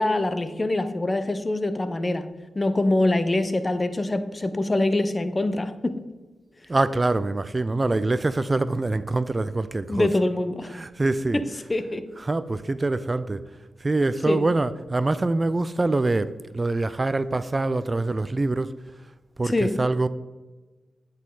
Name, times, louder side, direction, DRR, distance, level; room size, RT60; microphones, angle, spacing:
voice 1, 0.0-2.2 2.6-6.0 9.9-10.7 11.3-11.4 11.7-12.1 14.3-14.4 19.4-19.8, left 2 dB, 30° left, 0.6 m, -24 dB
voice 2, 6.7-10.2 10.6-11.6 12.2-13.4 13.8-18.7 19.4-20.1, right 2 dB, 35° right, 0.3 m, -25 dB
8.1 x 4.0 x 3.8 m
supercardioid pair, 40°, 0 cm